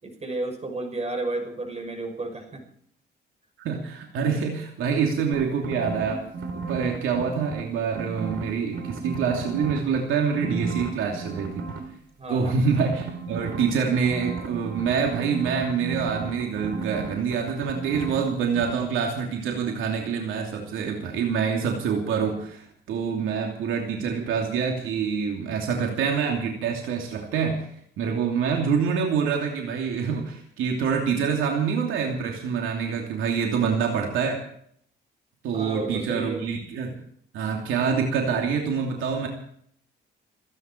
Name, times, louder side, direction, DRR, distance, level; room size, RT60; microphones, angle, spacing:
voice 1, 0.0-2.6 12.2-12.6 35.5-36.4, right 2 dB, 35° right, 3 dB, 6.3 m, -32 dB
voice 2, 3.6-6.2 6.5-11.6 12.3-27.7 28.0-34.4 35.4-36.9 37.3-39.3, right 6 dB, 85° right, 1 dB, 2.9 m, -26 dB
sound 1, 5.3-7.6 7.9-10.0 10.3-11.8 12.6-18.3 18.5-18.7, right 4 dB, 65° right, 3.2 m, -34 dB
29.0 x 10.0 x 4.6 m, 0.66 s
cardioid pair, 90°, 20 cm